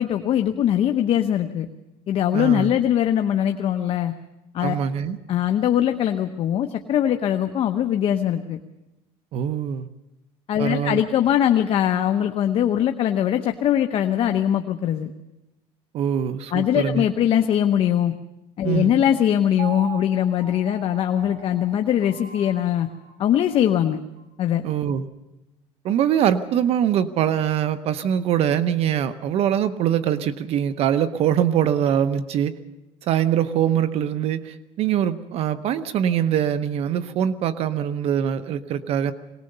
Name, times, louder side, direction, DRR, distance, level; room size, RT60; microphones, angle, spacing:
voice 1, 0.0-1.7 2.1-4.1 4.5-4.7 5.3-8.6 10.5-15.1 16.5-18.1 18.6-22.9 23.2-24.0 24.4-24.6, left 10 dB, 50° left, 7 dB, 1.0 m, -21 dB
voice 2, 2.3-2.7 4.6-5.2 9.3-9.9 10.6-11.0 15.9-17.0 18.6-19.0 24.6-25.1 25.8-32.6 33.0-39.1, right 9 dB, 55° right, 12 dB, 0.9 m, -23 dB
Piano, 19.6-23.7 24.2-24.3, right 9 dB, 75° right, 3.5 m, -40 dB
21.5 x 19.0 x 6.8 m, 0.96 s
cardioid pair, 130°, 12 cm